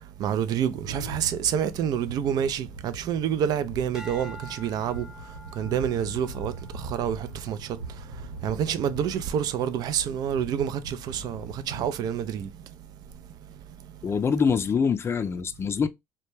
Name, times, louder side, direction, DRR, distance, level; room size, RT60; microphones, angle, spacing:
voice 1, 0.2-5.1 5.6-7.7 8.4-12.5, right 9 dB, 55° right, 0.4 m, -28 dB
sound 1, 0.8-11.9, right 2 dB, 85° right, 1.1 m, -41 dB
sound 2, 3.9-8.4 9.0-9.4, equal, 5° right, 0.8 m, -48 dB
voice 2, 14.0-15.9, left 6 dB, 30° left, 0.4 m, -24 dB
2.2 x 2.1 x 3.0 m
hypercardioid pair, 65°, 8 cm